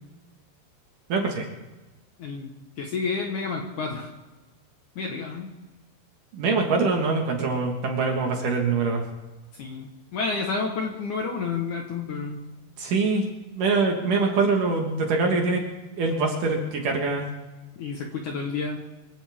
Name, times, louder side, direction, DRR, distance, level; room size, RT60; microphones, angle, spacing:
voice 1, 1.1-1.5 6.3-9.0 12.8-13.2 13.5-15.6 16.0-17.3, right 4 dB, 55° right, 1 dB, 2.8 m, -24 dB
voice 2, 2.2-2.5 2.8-4.1 5.0-5.5 9.5-12.4 17.8-18.8, left 4 dB, 60° left, 1 dB, 2.2 m, -30 dB
25.0 x 15.5 x 3.6 m, 1.1 s
omnidirectional pair, 5.0 m